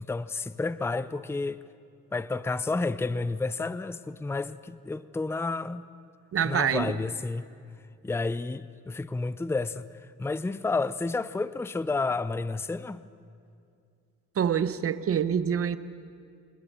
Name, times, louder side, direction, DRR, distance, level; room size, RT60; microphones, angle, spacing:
voice 1, 0.0-1.6 2.1-5.9 6.4-7.5 8.0-9.9 10.2-13.0, left 3 dB, 10° left, 0.5 m, -30 dB
voice 2, 6.3-7.0 14.4-15.8, right 8 dB, 50° right, 0.9 m, -26 dB
27.0 x 21.0 x 6.7 m
cardioid pair, 90°, 30 cm